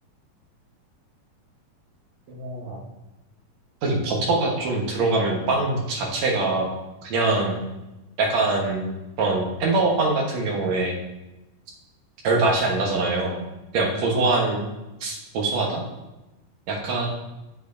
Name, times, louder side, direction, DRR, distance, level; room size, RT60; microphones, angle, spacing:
voice 1, 2.3-2.8 3.8-6.7 7.0-7.5 8.2-8.8 9.2-10.9 12.2-13.4 13.7-14.6 15.0-15.8 16.7-17.1, right 3 dB, 60° right, -1 dB, 2.3 m, -23 dB
10.5 x 7.8 x 2.7 m, 0.99 s
omnidirectional pair, 4.1 m